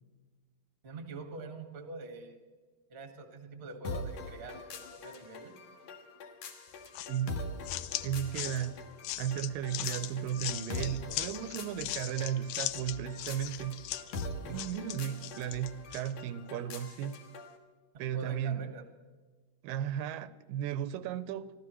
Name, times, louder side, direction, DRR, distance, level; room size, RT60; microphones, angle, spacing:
voice 1, 0.8-2.4 2.9-5.5 17.9-18.8, right 3 dB, 30° right, 1.1 m, -45 dB
sound 1, 3.8-17.6, left 2 dB, 60° left, 2.2 m, -44 dB
sound 2, 6.9-16.1, left 14 dB, 80° left, 2.2 m, -39 dB
voice 2, 7.1-7.4 8.0-8.9 9.2-13.9 14.4-17.2 18.0-18.7 19.6-21.5, right 10 dB, 85° right, 2.3 m, -35 dB
25.0 x 15.0 x 3.1 m
omnidirectional pair, 3.9 m